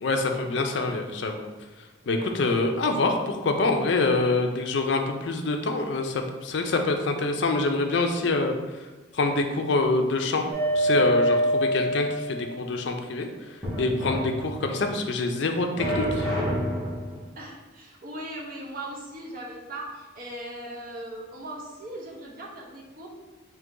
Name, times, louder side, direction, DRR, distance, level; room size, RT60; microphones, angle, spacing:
voice 1, 0.0-1.5 2.1-8.6 9.1-10.4 10.7-13.3 13.8-16.3, left 3 dB, 60° left, 4 dB, 0.4 m, -25 dB
voice 2, 2.1-2.6 17.3-23.1, right 1 dB, 45° right, -2 dB, 0.8 m, -39 dB
sound 1, 10.5-12.5 13.6-14.9 15.8-17.2, equal, 5° left, 1.1 m, -26 dB
3.8 x 2.8 x 3.7 m, 1.1 s
head